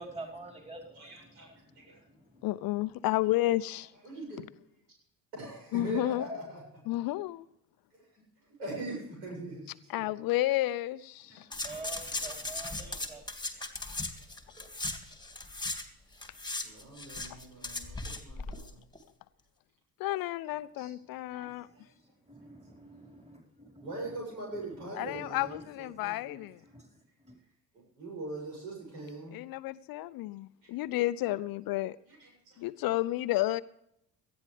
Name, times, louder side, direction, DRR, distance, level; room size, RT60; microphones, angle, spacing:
voice 1, 0.0-1.0 1.8-2.4 11.6-13.2 21.4-21.6 22.3-23.9 25.1-25.6 26.7-26.9 27.2-27.3, right 2 dB, 15° right, -1 dB, 4.7 m, -46 dB
voice 2, 0.9-1.5 1.8-2.0 3.7-4.4 5.3-7.1 7.9-8.2 8.6-10.1 11.3-11.6 12.1-12.4 12.8-13.0 16.6-18.8 20.8-20.9 21.3-21.5 23.8-26.5 27.7-29.4 30.6-30.7 31.2-31.3 32.1-32.5, right 2 dB, 75° right, -2 dB, 7.2 m, -42 dB
voice 3, 2.4-3.9 5.7-6.3 6.9-7.5 9.9-11.5 20.0-21.7 25.0-26.6 29.3-32.0 32.6-33.6, left 16 dB, 50° left, 17 dB, 0.6 m, -31 dB
sound 1, 11.5-15.9 16.1-18.7 19.0-19.1, left 2 dB, 10° left, 2.2 m, -38 dB
18.5 x 13.5 x 3.4 m, 0.77 s
figure-of-eight pair, 50°, 47 cm